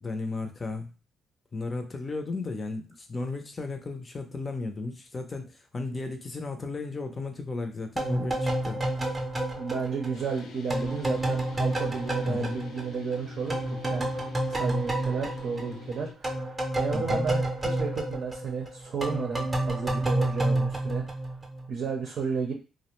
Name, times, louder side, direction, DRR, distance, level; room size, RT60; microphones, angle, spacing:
voice 1, 0.0-0.9 1.5-9.1 12.3-12.6 16.9-17.2, left 3 dB, 30° left, 5 dB, 0.5 m, -34 dB
sound 1, 8.0-13.2 13.5-21.7, right 1 dB, 20° right, 0.6 m, -30 dB
voice 2, 9.6-13.6 13.9-14.1 14.5-21.0 21.7-22.5, right 5 dB, 70° right, 0 dB, 0.6 m, -32 dB
sound 2, 10.1-16.1, left 6 dB, 80° left, 0.4 m, -44 dB
2.4 x 2.1 x 3.0 m, 0.31 s
cardioid pair, 90°, 0 cm